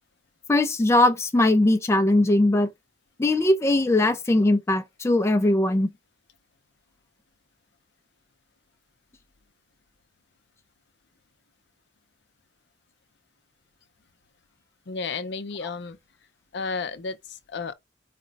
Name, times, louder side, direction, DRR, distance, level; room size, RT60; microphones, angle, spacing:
voice 1, 0.5-2.7 3.2-5.9, left 1 dB, 15° left, 0.3 m, -20 dB
voice 2, 14.9-16.0 16.5-17.7, left 4 dB, 60° left, 0.6 m, -32 dB
4.9 x 2.1 x 3.9 m
head